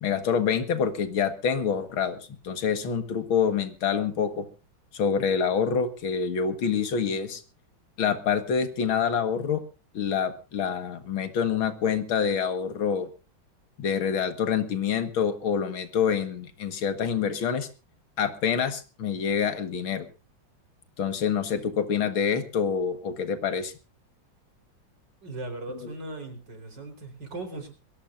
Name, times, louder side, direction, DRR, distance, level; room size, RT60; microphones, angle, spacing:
voice 1, 0.0-2.2 2.4-4.5 4.9-7.4 8.0-9.6 9.9-13.1 13.8-17.7 18.2-20.1 21.0-23.7 25.7-25.9, left 7 dB, 90° left, 9 dB, 2.5 m, -26 dB
voice 2, 25.2-27.7, right 2 dB, 60° right, 6 dB, 4.7 m, -38 dB
22.5 x 17.5 x 2.6 m, 0.34 s
omnidirectional pair, 2.2 m